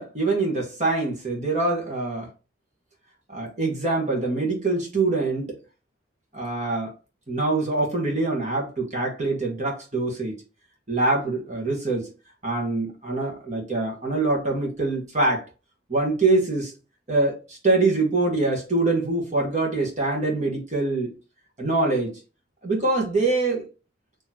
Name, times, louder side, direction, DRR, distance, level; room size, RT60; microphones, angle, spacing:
voice 1, 0.0-2.3 3.3-5.6 6.3-6.9 7.3-10.3 10.9-12.1 12.4-15.4 15.9-16.7 17.1-21.1 21.6-22.1 22.6-23.7, right 2 dB, 40° right, 1.4 m, -24 dB
4.3 x 3.0 x 2.9 m
head